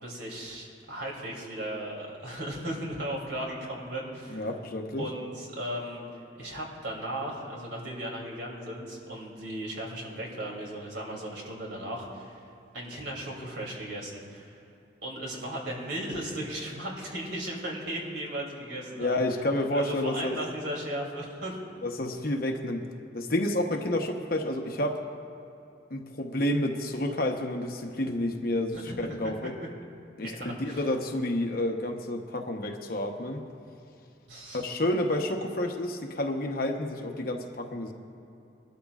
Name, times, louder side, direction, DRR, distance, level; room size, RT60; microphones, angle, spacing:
voice 1, 0.0-4.5 5.0-12.5 12.7-14.6 15.0-19.2 19.7-21.6 28.7-29.5 30.2-30.8 34.3-34.7, right 1 dB, 70° right, -2 dB, 2.9 m, -36 dB
voice 2, 4.3-5.0 19.0-20.4 21.8-22.8 23.1-25.0 25.9-29.5 30.2-33.4 34.5-37.9, left 1 dB, 50° left, 3 dB, 1.0 m, -30 dB
21.0 x 13.0 x 2.4 m, 2.8 s
head